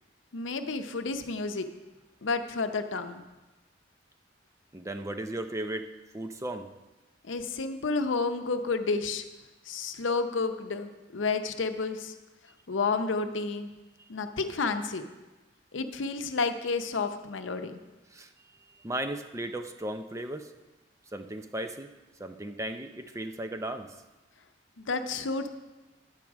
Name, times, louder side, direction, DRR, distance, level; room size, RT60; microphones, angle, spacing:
voice 1, 0.3-1.7 2.2-3.2 7.3-9.2 9.7-12.1 12.7-13.7 14.1-15.1 15.7-17.8 24.8-25.5, left 4 dB, 85° left, 8 dB, 0.7 m, -30 dB
voice 2, 4.7-5.9 6.1-6.7 14.0-14.1 18.1-18.3 18.8-20.5 21.1-21.9 22.2-23.9, right 1 dB, 15° right, 7 dB, 0.5 m, -36 dB
10.5 x 4.7 x 7.2 m, 1.1 s
head